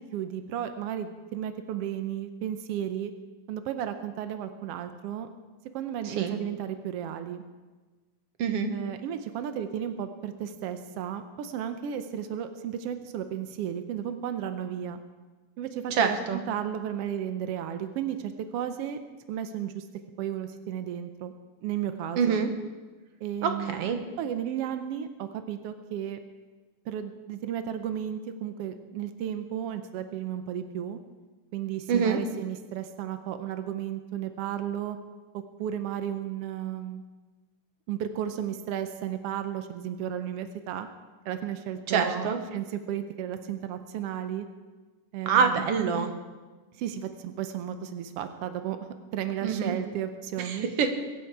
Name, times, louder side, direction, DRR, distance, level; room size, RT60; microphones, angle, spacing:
voice 1, 0.1-3.1 3.5-5.3 5.7-7.4 8.7-15.0 15.6-19.0 19.3-19.9 20.2-21.3 21.6-22.4 23.2-23.8 24.2-26.2 26.8-31.0 31.5-35.0 35.3-37.0 37.9-40.9 41.2-44.5 45.1-45.7 46.7-48.8 49.1-50.7, right 10 dB, 85° right, 9 dB, 1.3 m, -34 dB
voice 2, 6.0-6.4 8.4-8.7 15.9-16.4 22.2-22.5 23.4-24.0 31.9-32.2 41.9-42.4 45.2-46.1 49.4-49.7 50.4-51.0, right 6 dB, 60° right, 6 dB, 1.8 m, -25 dB
22.5 x 10.5 x 4.7 m, 1.3 s
omnidirectional pair, 3.7 m